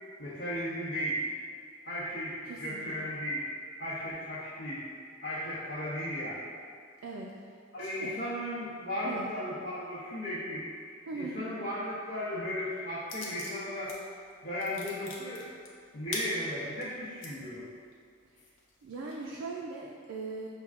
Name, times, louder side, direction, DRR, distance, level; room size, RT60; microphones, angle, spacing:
voice 1, 0.2-1.3 1.8-3.5 3.8-4.9 5.2-6.5 7.7-10.7 11.1-13.9 14.4-15.5 15.9-17.6, equal, 85° left, -14 dB, 0.9 m, -35 dB
voice 2, 2.4-2.8 7.0-7.5 7.8-8.1 9.0-9.2 11.1-11.3 18.4-18.5 18.8-20.5, right 3 dB, 75° right, -2 dB, 0.3 m, -40 dB
sound 1, 13.1-14.0 14.3-17.3 17.8-17.9 18.4-19.3, left 3 dB, 65° left, 0.5 m, -42 dB
5.6 x 2.2 x 2.4 m, 2.2 s
head